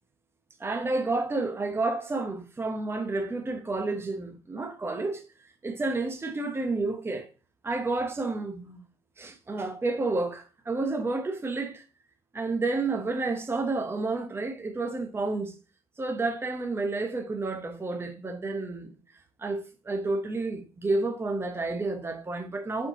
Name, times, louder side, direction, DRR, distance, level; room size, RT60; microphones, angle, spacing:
voice 1, 0.6-5.2 5.6-7.3 7.6-8.8 9.2-11.8 12.3-15.5 16.0-18.9 19.4-22.9, right 3 dB, 20° right, 0.8 m, -30 dB
4.4 x 4.3 x 2.7 m
supercardioid pair, 75°, 12 cm